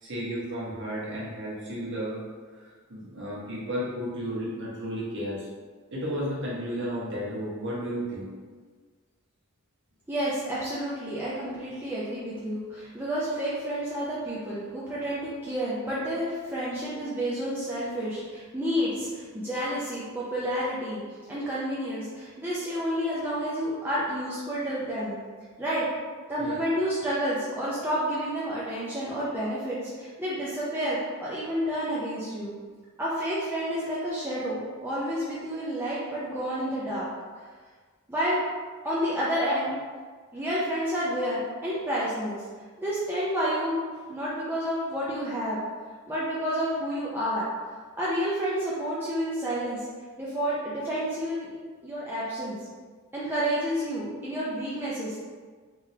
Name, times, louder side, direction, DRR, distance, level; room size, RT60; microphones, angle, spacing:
voice 1, 0.0-2.2 2.6-5.5 5.9-8.3 26.4-26.5, equal, 55° right, -6 dB, 1.2 m, -33 dB
voice 2, 10.1-21.0 21.3-25.2 25.6-25.9 26.3-32.5 33.0-37.1 38.1-38.4 38.8-39.7 40.3-42.4 42.8-45.6 46.1-47.4 48.0-49.9 50.2-51.5 51.8-52.6 53.1-55.2, equal, 10° right, -9 dB, 0.5 m, -30 dB
3.7 x 3.4 x 2.8 m, 1.5 s
head